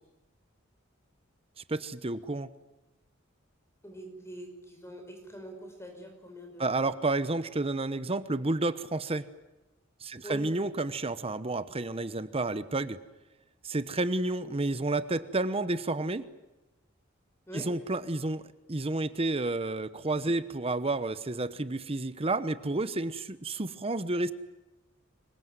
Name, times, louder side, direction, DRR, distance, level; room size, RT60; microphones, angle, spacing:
voice 1, 1.6-2.5 6.6-9.3 10.0-13.0 13.6-16.3 17.5-18.4 18.7-24.3, right 2 dB, 30° right, 13 dB, 1.0 m, -30 dB
voice 2, 3.8-6.8 10.2-10.4 17.5-17.7, right 1 dB, 15° left, 4 dB, 5.5 m, -44 dB
26.0 x 23.5 x 9.4 m, 1.0 s
head